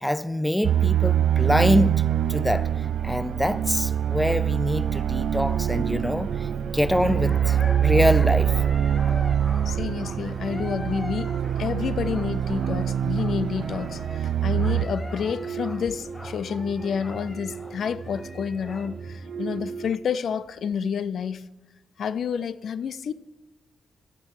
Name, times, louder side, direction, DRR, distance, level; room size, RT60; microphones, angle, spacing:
voice 1, 0.0-2.0 2.3-2.7 3.0-6.5 6.7-8.5, left 1 dB, 5° left, 0.4 m, -24 dB
sound 1, 0.6-14.9, right 10 dB, 90° right, 0.4 m, -24 dB
sound 2, 5.2-19.9, right 6 dB, 60° right, 0.7 m, -39 dB
sound 3, 7.0-18.9, left 2 dB, 20° left, 1.1 m, -42 dB
voice 2, 9.7-11.3 11.6-21.5 22.0-23.1, left 7 dB, 65° left, 0.4 m, -29 dB
12.5 x 9.6 x 4.8 m
wide cardioid pair, 135°, 0 cm